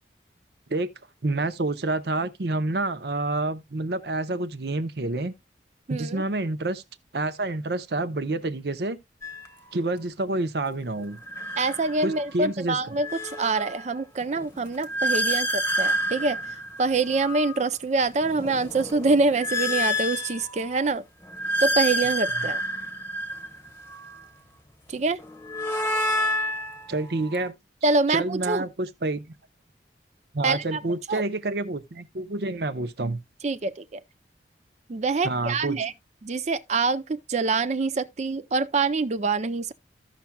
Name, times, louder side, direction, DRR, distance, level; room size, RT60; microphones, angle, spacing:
voice 1, 1.2-5.3 5.9-6.8 7.1-9.0 9.7-11.2 12.0-12.8 22.3-22.4 26.9-27.5 28.1-29.2 30.3-33.2 35.2-35.8, right 2 dB, 65° right, 0.8 m, -28 dB
voice 2, 5.9-6.2 11.6-16.4 16.8-21.0 21.6-22.6 24.9-25.2 27.8-28.6 30.4-30.8 31.1-31.2 33.4-34.0 34.9-35.9 36.2-39.7, right 3 dB, 40° right, 0.4 m, -25 dB
sound 1, 9.2-9.5 11.1-12.3 12.8-17.6 18.1-20.8 21.2-24.2 25.2-27.5, equal, 15° left, 1.0 m, -29 dB
15.0 x 5.8 x 2.2 m
head